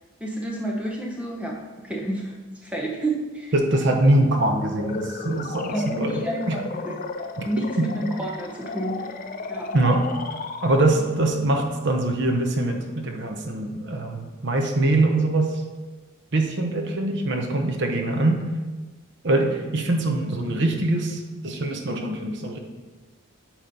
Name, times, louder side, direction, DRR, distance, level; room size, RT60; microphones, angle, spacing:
voice 1, 0.2-2.3 2.6-3.5 5.7-6.9 7.4-9.1 9.5-9.7, right 1 dB, 5° right, -2 dB, 0.8 m, -30 dB
voice 2, 3.5-6.6 7.4-7.5 7.8-7.9 9.7-10.0 10.6-15.6 16.3-18.4 19.2-22.6, right 2 dB, 55° right, 3 dB, 0.8 m, -23 dB
sound 1, 4.7-11.2, left 3 dB, 40° left, 0.4 m, -34 dB
8.9 x 3.1 x 5.3 m, 1.2 s
head